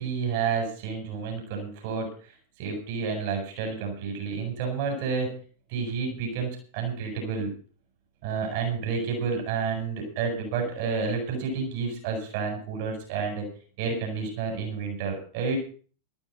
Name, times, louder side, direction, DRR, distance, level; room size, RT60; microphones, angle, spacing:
voice 1, 0.0-5.3 5.7-7.5 8.2-13.4 13.8-15.6, right 5 dB, 50° right, 3 dB, 7.7 m, -30 dB
14.0 x 14.0 x 5.1 m, 0.40 s
figure-of-eight pair, 90°, 0 cm